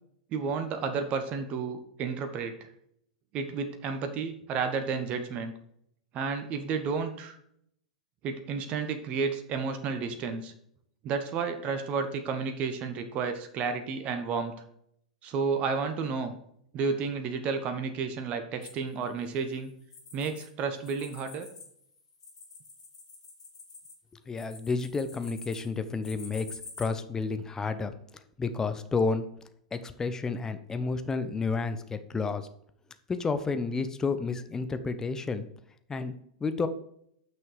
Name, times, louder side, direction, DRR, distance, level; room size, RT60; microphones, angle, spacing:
voice 1, 0.3-2.7 3.3-5.5 6.1-7.4 8.2-10.5 11.0-14.5 15.2-16.3 16.7-19.7 20.1-21.5, right 5 dB, 35° right, 7 dB, 1.2 m, -31 dB
sound 1, 18.6-20.5 20.8-26.8, left 4 dB, 70° left, 3.8 m, -48 dB
voice 2, 24.3-29.2 29.7-32.5 33.1-35.5 35.9-36.1 36.4-36.7, left 4 dB, 15° left, 10 dB, 0.9 m, -31 dB
9.2 x 6.2 x 4.9 m, 0.69 s
figure-of-eight pair, 95°, 4 cm